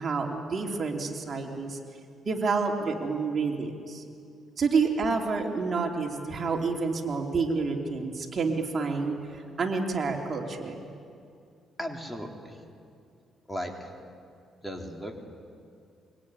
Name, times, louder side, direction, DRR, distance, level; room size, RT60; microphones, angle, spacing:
voice 1, 0.0-1.8 2.2-4.0 4.6-10.8, right 4 dB, 45° right, 1 dB, 3.3 m, -29 dB
voice 2, 11.8-12.6 13.5-13.9 14.6-15.1, equal, 10° left, 2 dB, 3.7 m, -36 dB
25.0 x 24.0 x 9.8 m, 2.4 s
cardioid pair, 90°, 0 cm